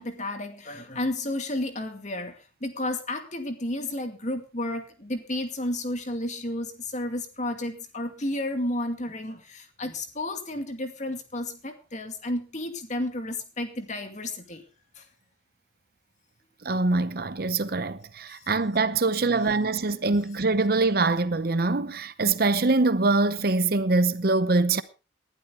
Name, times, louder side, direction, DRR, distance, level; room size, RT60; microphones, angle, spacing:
voice 1, 0.0-14.6 15.0-15.1 18.3-18.5 19.2-19.5 20.1-20.2, left 1 dB, 40° left, 2.3 m, -32 dB
voice 2, 16.6-24.8, right 3 dB, 50° right, 0.8 m, -24 dB
19.0 x 12.0 x 3.8 m
head